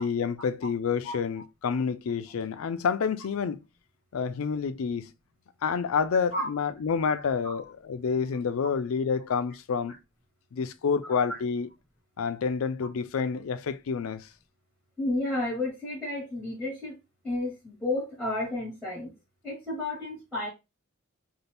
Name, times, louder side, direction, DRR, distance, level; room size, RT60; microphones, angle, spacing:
voice 1, 0.0-3.6 4.1-5.1 5.6-10.0 10.5-11.7 12.2-14.2, left 6 dB, 85° left, 0.4 m, -28 dB
voice 2, 15.0-17.0 17.2-19.1 19.4-20.5, left 2 dB, 5° right, 1.4 m, -32 dB
2.7 x 2.5 x 3.3 m
head